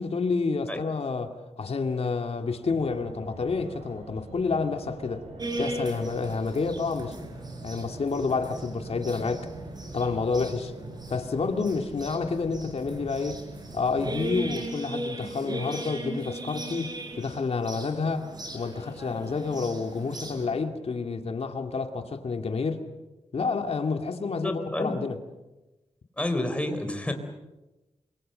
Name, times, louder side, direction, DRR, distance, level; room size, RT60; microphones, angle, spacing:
voice 1, 0.0-5.2 5.6-7.4 7.6-9.5 9.9-10.7 11.1-13.4 13.7-18.3 18.5-22.8 23.3-25.2, left 4 dB, 60° left, 5 dB, 2.4 m, -29 dB
Fixed-wing aircraft airplane, 2.6-14.6, right 2 dB, 70° right, 6.0 m, -46 dB
sound 1, 5.4-20.5, right 1 dB, 35° right, 6.0 m, -38 dB
voice 2, 24.3-24.9 26.2-27.1, left 1 dB, 10° left, 6 dB, 3.9 m, -29 dB
28.5 x 24.0 x 7.8 m, 1.1 s
wide cardioid pair, 130°, 12 cm